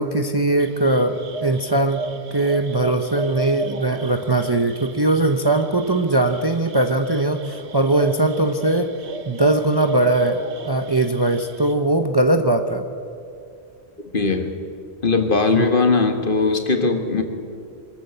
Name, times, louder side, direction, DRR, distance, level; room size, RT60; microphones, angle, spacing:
voice 1, 0.0-2.0 2.3-8.9 9.3-12.9 15.5-15.8, right 2 dB, 25° right, 7 dB, 0.8 m, -20 dB
sound 1, 0.6-11.7, right 4 dB, 85° right, 1.5 m, -34 dB
voice 2, 14.1-14.5 15.0-17.2, left 3 dB, 50° left, 6 dB, 1.7 m, -19 dB
23.5 x 14.0 x 8.0 m, 2.5 s
omnidirectional pair, 1.1 m